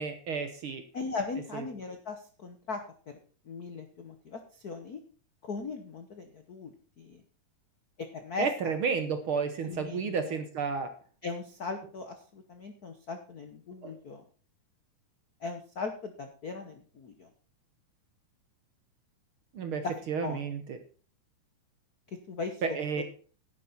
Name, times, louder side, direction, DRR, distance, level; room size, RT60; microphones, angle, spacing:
voice 1, 0.0-0.8 8.4-10.9 13.8-13.9 19.6-19.8 20.1-20.8 22.6-23.0, right 5 dB, 60° right, 8 dB, 1.4 m, -31 dB
voice 2, 0.9-2.8 3.5-5.0 5.4-7.2 8.0-8.7 9.6-10.4 11.2-14.2 15.4-17.3 19.8-20.4 22.3-23.0, left 4 dB, 90° left, 7 dB, 0.8 m, -39 dB
11.0 x 10.5 x 4.2 m, 0.40 s
omnidirectional pair, 3.6 m